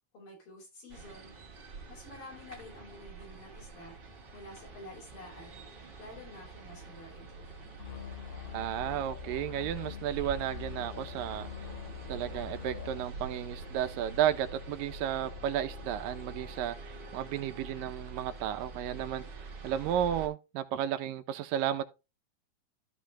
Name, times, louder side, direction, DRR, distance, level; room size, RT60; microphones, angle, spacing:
voice 1, 0.1-1.4 1.9-4.0 4.3-7.6, left 2 dB, 70° left, 6.6 m, -50 dB
sound 1, 0.9-20.3, right 2 dB, 35° right, 2.8 m, -46 dB
sound 2, 7.8-13.0, left 11 dB, 45° left, 2.7 m, -44 dB
voice 2, 8.5-11.5 12.1-21.8, right 10 dB, 75° right, 2.6 m, -33 dB
sound 3, 11.4-17.7, right 2 dB, 10° right, 2.7 m, -55 dB
13.5 x 5.0 x 3.3 m
omnidirectional pair, 4.1 m